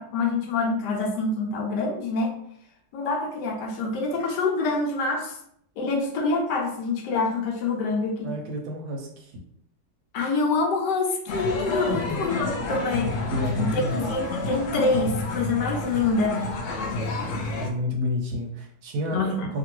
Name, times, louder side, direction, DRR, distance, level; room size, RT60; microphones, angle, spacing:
voice 1, 0.0-2.3 2.9-5.4 5.8-8.3 10.1-13.1 13.6-16.4 19.1-19.5, left 3 dB, 85° left, 2 dB, 1.3 m, -26 dB
voice 2, 8.2-9.3 11.9-12.2 13.3-14.0 17.6-19.6, left 2 dB, 70° right, 2 dB, 1.1 m, -30 dB
sound 1, 11.3-17.7, left 2 dB, 65° left, 0.8 m, -30 dB
2.9 x 2.5 x 3.0 m, 0.68 s
omnidirectional pair, 1.8 m